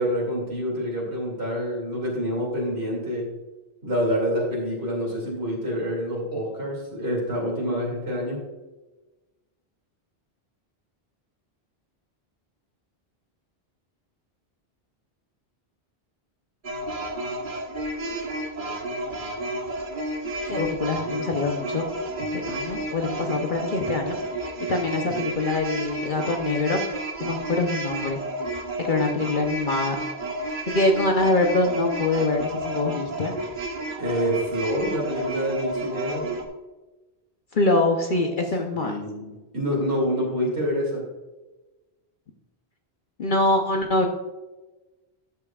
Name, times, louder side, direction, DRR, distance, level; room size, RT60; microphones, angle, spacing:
voice 1, 0.0-3.3 3.8-8.4 34.0-36.3 38.7-41.1, equal, 80° right, -3 dB, 2.8 m, -27 dB
sound 1, 16.6-36.5, right 1 dB, 50° right, 1.2 m, -31 dB
voice 2, 20.4-21.8 22.3-24.4 24.7-26.8 27.2-28.2 28.8-30.0 30.7-33.3 37.5-38.9 43.2-44.1, left 2 dB, 55° left, 3 dB, 0.9 m, -24 dB
12.5 x 8.5 x 2.4 m, 1.1 s
omnidirectional pair, 1.1 m